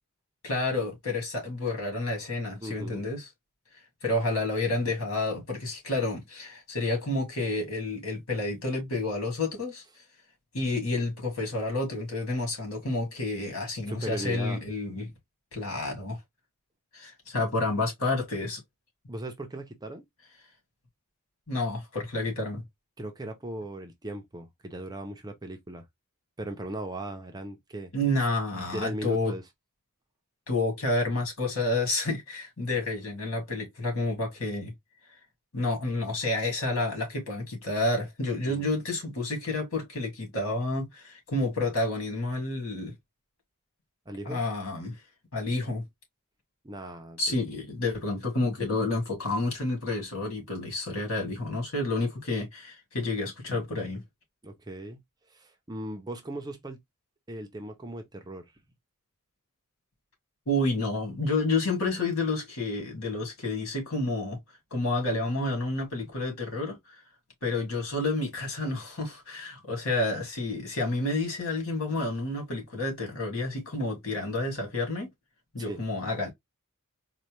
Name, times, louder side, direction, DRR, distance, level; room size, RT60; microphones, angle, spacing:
voice 1, 0.4-3.3 4.0-9.8 10.5-15.1 15.5-16.2 16.9-18.6 21.5-22.6 27.9-29.3 30.5-34.7 35.5-42.9 44.3-45.0 45.3-45.8 47.2-54.0 60.5-64.4 64.7-67.0 67.4-75.1 75.5-76.3, left 2 dB, 65° left, 2.2 m, -30 dB
voice 2, 2.6-3.1 13.9-14.6 19.1-20.0 23.0-25.8 26.4-27.9 28.5-29.4 38.5-38.7 44.1-44.4 46.6-47.2 54.4-55.0 55.3-56.8 57.3-58.4 75.6-75.8, right 1 dB, 20° right, 0.6 m, -38 dB
4.2 x 2.2 x 3.1 m
head